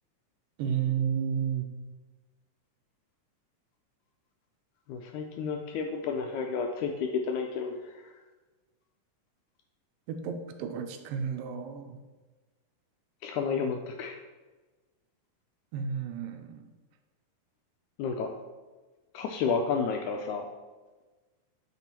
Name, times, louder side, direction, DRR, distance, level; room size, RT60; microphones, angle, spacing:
voice 1, 0.6-1.7 10.1-12.0 15.7-16.7, right 7 dB, 90° right, 6 dB, 2.3 m, -32 dB
voice 2, 4.9-8.1 13.2-14.2 18.0-18.4 19.1-20.5, left 5 dB, 80° left, 3 dB, 1.8 m, -31 dB
9.0 x 4.1 x 4.2 m, 1.2 s
omnidirectional pair, 3.9 m